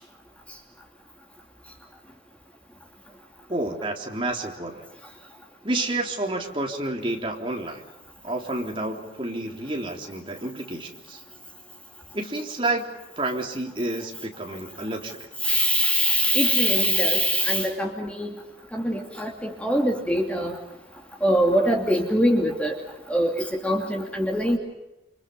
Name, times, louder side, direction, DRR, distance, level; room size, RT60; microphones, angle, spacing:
voice 1, 3.5-4.8 5.6-7.8 8.2-11.2 12.1-12.9 13.2-15.3, right 2 dB, 30° right, 1 dB, 3.7 m, -29 dB
voice 2, 15.4-18.3 18.7-20.5 21.2-22.7 23.1-24.6, equal, 5° left, 1 dB, 2.7 m, -23 dB
29.0 x 29.0 x 5.5 m, 0.94 s
head